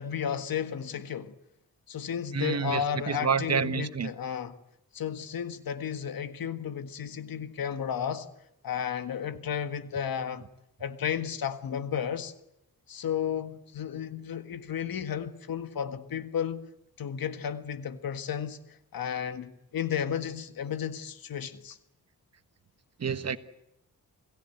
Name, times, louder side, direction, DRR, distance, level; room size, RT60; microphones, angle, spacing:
voice 1, 0.0-1.3 1.9-4.5 4.9-8.3 8.6-10.4 10.8-12.3 12.9-16.6 17.0-21.8, left 8 dB, 85° left, 1.7 m, -33 dB
voice 2, 2.3-4.1 23.0-23.4, right 6 dB, 50° right, 1.4 m, -28 dB
28.0 x 17.0 x 9.3 m
wide cardioid pair, 100°, 34 cm